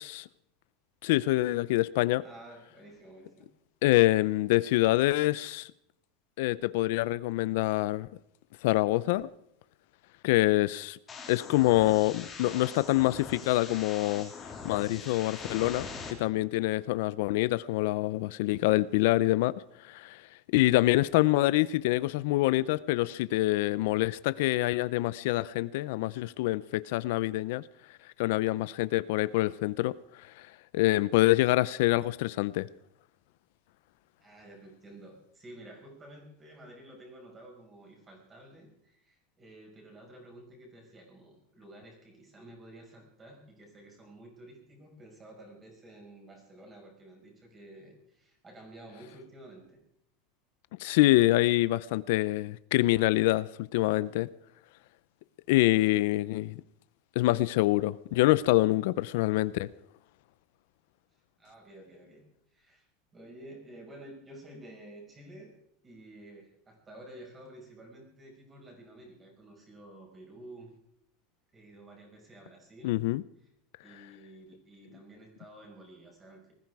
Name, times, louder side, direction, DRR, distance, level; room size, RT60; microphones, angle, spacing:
voice 1, 1.0-2.2 3.8-5.7 6.4-8.1 8.6-9.3 10.2-11.0 11.3-14.3 14.6-15.9 16.2-19.5 19.8-20.3 20.5-27.6 28.2-30.0 30.2-30.5 30.7-32.7 50.8-54.3 55.5-56.6 57.2-59.7 72.8-73.2, left 17 dB, 70° left, 0.5 m, -26 dB
voice 2, 2.2-3.5 34.2-49.8 56.2-56.4 61.4-62.2 62.5-62.9 63.1-65.5 65.8-70.7 71.5-73.0 73.8-76.5, right 1 dB, 20° right, 5.6 m, -51 dB
sound 1, 11.1-16.1, left 5 dB, 20° left, 3.1 m, -42 dB
20.0 x 14.5 x 4.8 m
supercardioid pair, 160°, 0 cm